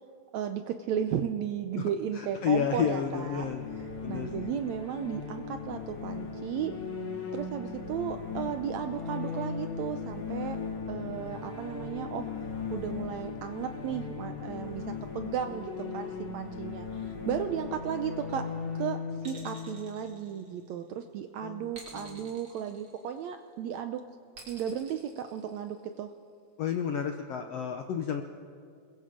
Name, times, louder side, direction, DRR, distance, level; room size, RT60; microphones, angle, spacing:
voice 1, 0.3-3.4 4.1-6.7 7.3-10.6 10.9-12.3 12.7-14.8 15.1-18.4 18.8-19.0 19.2-24.0 24.5-26.1, right 9 dB, 75° right, 8 dB, 1.7 m, -34 dB
voice 2, 2.1-3.6 4.0-4.5 21.4-22.3 26.6-28.2, left 7 dB, 75° left, 6 dB, 1.5 m, -31 dB
sound 1, 2.3-20.9, left 5 dB, 40° left, 2.5 m, -38 dB
sound 2, 19.2-20.9 21.7-23.4 24.3-26.0, right 3 dB, 40° right, 4.1 m, -50 dB
28.0 x 21.5 x 5.0 m, 2.2 s
omnidirectional pair, 3.9 m